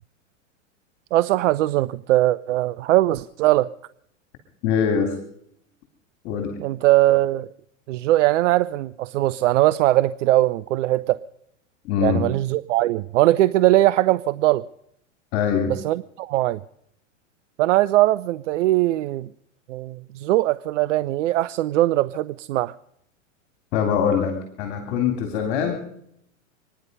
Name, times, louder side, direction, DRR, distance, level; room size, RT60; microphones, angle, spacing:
voice 1, 1.1-3.7 6.6-7.5 7.9-11.2 12.0-14.6 15.7-16.6 17.6-19.3 19.7-22.7, right 16 dB, 70° right, 17 dB, 0.6 m, -20 dB
voice 2, 4.6-5.1 6.2-6.6 11.8-12.2 15.3-15.7 23.7-25.8, left 7 dB, 50° left, 5 dB, 3.1 m, -23 dB
26.0 x 10.5 x 5.4 m, 0.73 s
hypercardioid pair, 125°, 39 cm